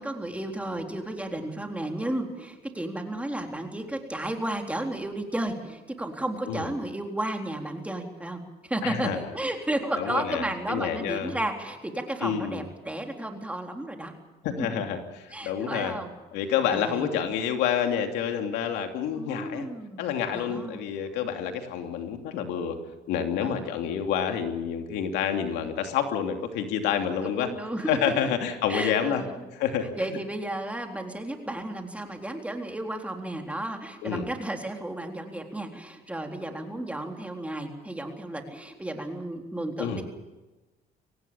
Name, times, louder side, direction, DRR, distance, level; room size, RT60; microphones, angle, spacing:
voice 1, 0.0-14.1 14.6-14.8 15.3-16.1 16.7-17.1 19.2-20.0 20.3-20.9 23.4-23.7 27.2-28.3 28.7-29.4 29.9-40.0, right 1 dB, 10° right, 3 dB, 3.9 m, -33 dB
voice 2, 8.8-9.3 10.0-11.4 12.2-12.6 14.4-16.0 16.3-19.7 20.0-22.8 23.1-27.5 27.9-29.2 29.5-30.2 34.0-34.3 39.8-40.0, left 8 dB, 90° left, 5 dB, 2.9 m, -28 dB
25.0 x 18.0 x 7.1 m, 1.1 s
cardioid pair, 110°, 17 cm